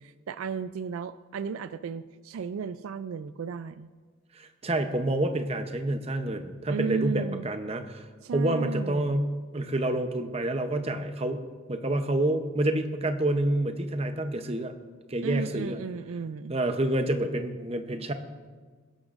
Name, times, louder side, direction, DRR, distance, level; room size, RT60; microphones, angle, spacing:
voice 1, 0.0-3.9 6.7-7.5 8.2-9.2 15.2-16.6, right 6 dB, 70° right, 13 dB, 0.3 m, -34 dB
voice 2, 4.3-8.1 8.3-14.7 15.1-15.8 16.5-18.1, right 1 dB, 30° right, 7 dB, 0.7 m, -28 dB
23.5 x 11.5 x 2.5 m, 1.5 s
head